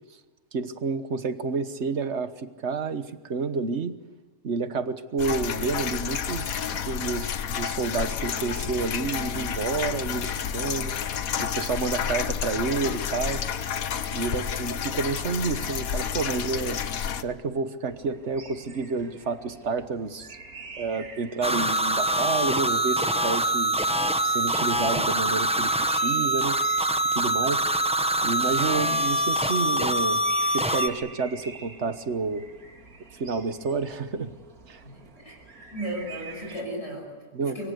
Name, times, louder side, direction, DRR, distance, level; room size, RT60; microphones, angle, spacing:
voice 1, 0.5-3.9 4.4-10.9 11.4-13.4 14.1-16.8 17.2-20.4 20.8-23.8 24.3-26.6 27.1-27.6 28.2-30.2 30.5-32.4 33.2-34.3 34.7-34.8 37.3-37.6, right 4 dB, 55° right, 11 dB, 1.5 m, -29 dB
sound 1, 5.2-17.2, left 8 dB, 75° left, 1.4 m, -30 dB
sound 2, 17.9-36.6, right 3 dB, 90° right, 2.8 m, -47 dB
sound 3, 21.4-30.9, right 1 dB, 5° right, 1.0 m, -24 dB
voice 2, 34.8-35.4 35.7-37.7, right 1 dB, 50° left, 0 dB, 6.2 m, -36 dB
25.0 x 24.0 x 7.9 m, 1.2 s
omnidirectional pair, 1.5 m